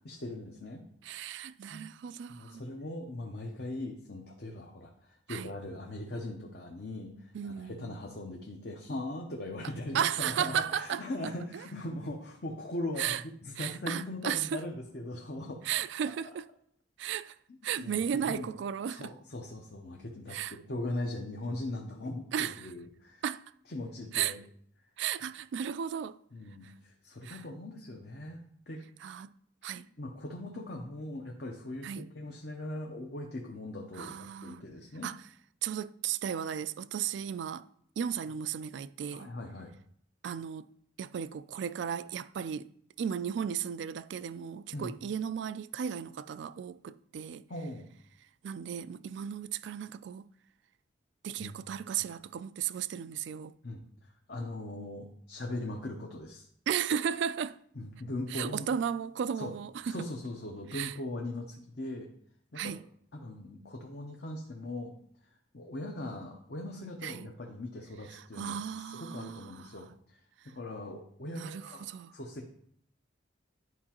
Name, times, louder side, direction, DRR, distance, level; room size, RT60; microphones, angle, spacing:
voice 1, 0.0-1.2 1.7-1.8 2.3-15.6 17.8-18.6 18.9-23.2 23.7-24.4 26.3-28.4 28.7-28.8 30.0-35.1 39.1-39.7 44.7-44.9 47.5-47.9 51.4-51.5 53.6-56.5 57.8-58.7 59.4-59.5 59.9-62.1 62.5-62.8 63.1-64.9 65.5-72.5, left 1 dB, 55° left, 0.8 m, -40 dB
voice 2, 1.0-2.6 5.3-5.5 7.3-8.0 9.9-11.3 13.0-13.2 13.6-14.6 15.6-16.5 17.0-17.4 17.6-19.1 20.3-20.6 22.3-22.5 23.2-23.4 24.1-24.3 25.0-26.2 27.2-27.4 29.0-29.3 29.6-29.9 31.8-32.1 34.0-34.6 35.0-35.2 35.6-37.7 38.0-39.3 40.2-40.7 41.0-42.7 43.0-47.4 48.4-50.3 51.2-53.6 56.7-57.6 58.3-60.0 60.7-60.9 62.6-62.8 67.0-67.3 68.1-69.7 71.3-72.1, right 8 dB, 70° right, 0.3 m, -35 dB
11.0 x 4.7 x 2.9 m
head